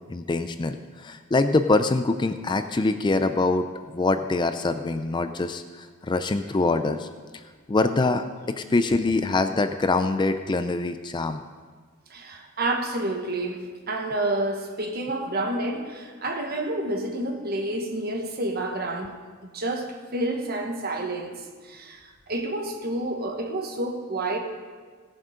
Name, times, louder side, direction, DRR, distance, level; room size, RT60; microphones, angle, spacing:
voice 1, 0.1-3.7 3.9-7.1 7.3-7.4 7.7-11.4, left 3 dB, 20° left, 9 dB, 0.4 m, -24 dB
voice 2, 12.1-24.4, right 2 dB, 45° right, 4 dB, 1.3 m, -29 dB
17.0 x 7.4 x 5.1 m, 1.5 s
head